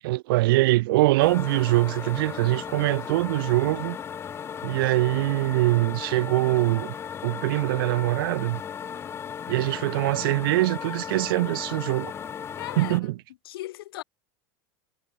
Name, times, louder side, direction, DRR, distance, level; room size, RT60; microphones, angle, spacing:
voice 1, 0.0-4.0 4.6-6.9 7.2-8.6 9.5-12.1 12.8-13.1, right 19 dB, 70° right, 1.0 m, -23 dB
sound 1, 1.2-13.0, left 8 dB, 20° left, 0.8 m, -36 dB
voice 2, 12.6-13.1 13.5-14.0, left 15 dB, 80° left, 3.8 m, -37 dB
supercardioid pair, 145°, 12 cm